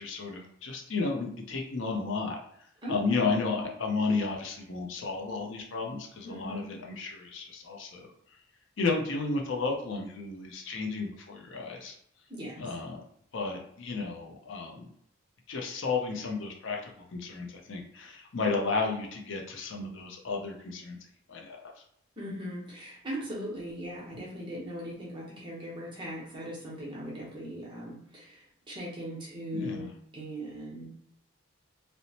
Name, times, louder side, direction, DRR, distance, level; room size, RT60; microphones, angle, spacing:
voice 1, 0.0-2.4 2.9-8.1 8.8-11.9 12.6-13.0 13.3-14.9 15.5-21.0 21.3-21.7 29.5-29.9, left 4 dB, 65° left, 1 dB, 0.5 m, -33 dB
voice 2, 2.8-3.3 6.2-6.7 12.3-12.6 22.2-29.9 30.1-30.9, equal, 25° right, -4 dB, 0.8 m, -39 dB
2.8 x 2.0 x 2.7 m, 0.68 s
head